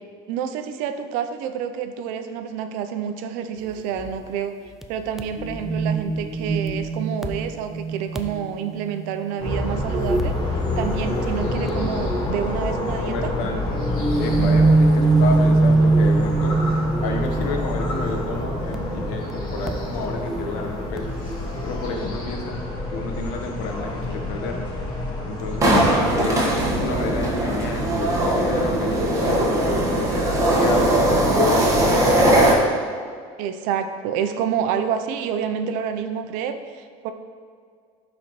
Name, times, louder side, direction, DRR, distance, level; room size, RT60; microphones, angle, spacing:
voice 1, 0.3-4.5 4.9-13.3 14.4-14.8 25.9-26.3 33.4-37.1, right 8 dB, 75° right, 8 dB, 0.6 m, -28 dB
sound 1, 4.0-4.1 4.8-4.9 5.2-9.3 9.8-10.4 10.7-12.4 13.8-21.7, right 3 dB, 5° right, 0.4 m, -23 dB
sound 2, 9.4-25.7, left 1 dB, 35° left, 1.7 m, -28 dB
voice 2, 13.0-13.8 14.2-16.5 17.0-21.1 21.6-22.5 22.9-24.7 25.2-25.7 26.1-29.5 29.9-30.9 31.3-32.2, left 3 dB, 75° left, 3 dB, 1.0 m, -31 dB
sound 3, 25.6-32.5, right 1 dB, 25° right, 1.4 m, -19 dB
12.0 x 4.1 x 3.1 m, 2.1 s
supercardioid pair, 120°, 14 cm